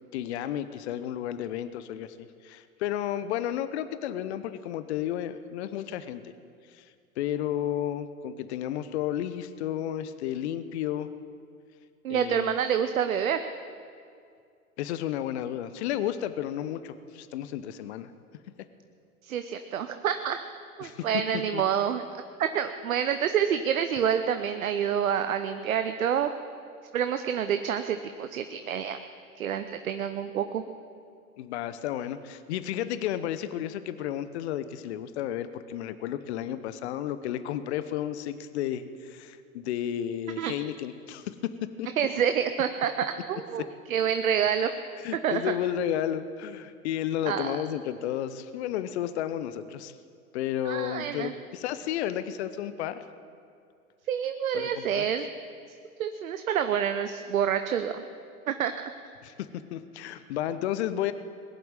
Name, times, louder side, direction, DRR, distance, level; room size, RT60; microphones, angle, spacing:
voice 1, 0.1-6.3 6.7-6.9 7.2-11.1 12.1-12.6 14.8-18.1 20.8-21.1 21.5-21.6 31.4-41.9 45.0-49.9 50.3-53.0 54.5-55.1 59.2-59.3 59.7-61.1, left 11 dB, 50° left, 12 dB, 0.9 m, -32 dB
voice 2, 12.0-13.4 19.2-20.4 20.8-22.0 22.4-26.3 26.9-29.0 29.4-30.6 40.4-40.5 42.0-44.7 45.2-45.5 47.3-47.5 50.6-51.3 54.1-55.3 56.0-58.1 58.5-58.9, right 8 dB, 65° right, 9 dB, 0.9 m, -28 dB
20.5 x 7.8 x 8.9 m, 2.3 s
figure-of-eight pair, 105°, 44 cm